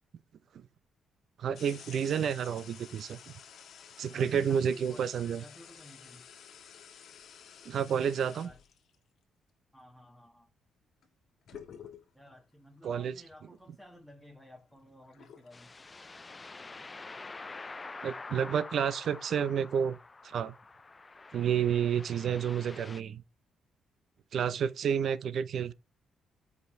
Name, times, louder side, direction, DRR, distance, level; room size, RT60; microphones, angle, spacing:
voice 1, 1.4-3.2 4.0-5.4 7.6-8.5 12.8-13.1 18.0-20.0 20.2-20.5 21.3-23.2 24.3-25.7, right 8 dB, 65° right, 0.7 m, -30 dB
sound 1, 1.5-8.9 11.0-11.1 11.5-12.3 13.0-13.1 13.5-15.5, left 8 dB, 65° left, 1.6 m, -52 dB
voice 2, 4.1-6.2 8.1-8.6 9.7-10.5 12.1-15.7, left 1 dB, ahead, 1.6 m, -54 dB
sound 2, 15.5-23.0, left 3 dB, 25° left, 0.3 m, -46 dB
8.0 x 5.3 x 3.2 m
cardioid pair, 90°, 0 cm